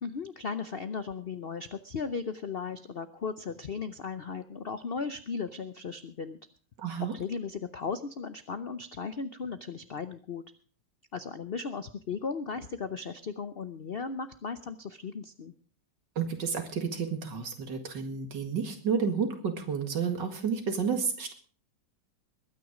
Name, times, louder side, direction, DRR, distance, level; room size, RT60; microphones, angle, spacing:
voice 1, 0.0-6.4 7.0-10.4 11.1-15.5, left 5 dB, 60° left, 11 dB, 0.6 m, -36 dB
voice 2, 6.8-7.1 16.2-21.3, right 6 dB, 70° right, 6 dB, 2.6 m, -31 dB
21.0 x 9.5 x 5.0 m, 0.42 s
omnidirectional pair, 2.0 m